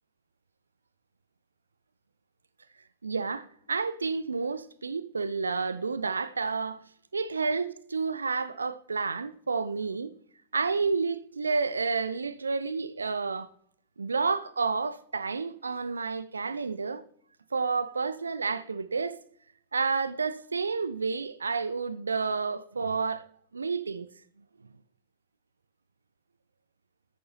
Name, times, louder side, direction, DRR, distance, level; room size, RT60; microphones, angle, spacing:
voice 1, 3.0-6.8 7.1-10.1 10.5-13.5 14.0-17.0 17.5-19.2 19.7-23.3 23.5-24.1, right 4 dB, 75° right, 0.3 m, -30 dB
10.0 x 9.2 x 2.8 m
figure-of-eight pair, 90°, 0 cm